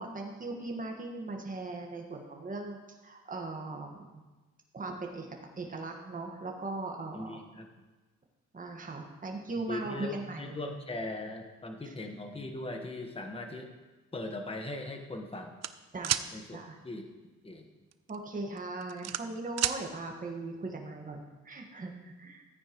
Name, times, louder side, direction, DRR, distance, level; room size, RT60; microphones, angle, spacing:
voice 1, 0.0-4.2 4.7-5.3 5.6-7.3 8.5-10.6 15.9-16.2 16.5-16.8 18.1-22.4, right 2 dB, 25° right, 1 dB, 1.6 m, -39 dB
voice 2, 7.1-7.7 9.7-13.7 14.1-15.6 16.3-17.1 17.4-17.7, left 2 dB, 20° left, 4 dB, 1.4 m, -39 dB
sound 1, 15.6-16.3 17.9-18.2 18.6-19.8, right 12 dB, 60° right, 0.5 m, -30 dB
13.5 x 9.2 x 3.1 m, 1.2 s
cardioid pair, 90°, 30 cm